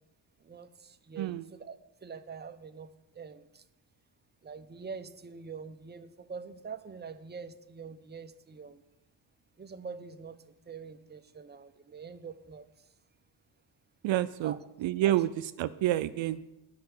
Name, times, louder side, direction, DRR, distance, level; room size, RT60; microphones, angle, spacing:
voice 1, 0.4-3.6 4.4-8.8 9.6-12.6 14.4-14.6 15.0-15.2, right 5 dB, 20° right, 9 dB, 0.7 m, -45 dB
voice 2, 14.0-14.5 14.8-15.3 15.6-16.4, right 14 dB, 70° right, 13 dB, 0.5 m, -28 dB
10.5 x 5.7 x 8.1 m, 0.95 s
cardioid pair, 75°, 47 cm